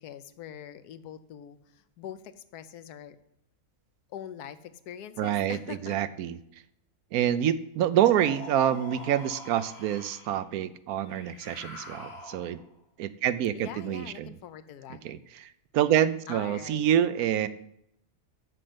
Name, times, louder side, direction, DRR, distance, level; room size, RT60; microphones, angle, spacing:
voice 1, 0.0-3.2 4.1-6.0 13.5-15.0 16.3-16.9, left 9 dB, 80° left, 12 dB, 1.2 m, -43 dB
voice 2, 5.2-6.4 7.1-12.6 13.0-14.3 14.9-17.5, right 10 dB, 75° right, 14 dB, 1.0 m, -27 dB
sound 1, 7.9-10.4 11.0-12.7, left 2 dB, 40° left, 2.0 m, -44 dB
7.7 x 6.4 x 7.9 m, 0.76 s
omnidirectional pair, 1.6 m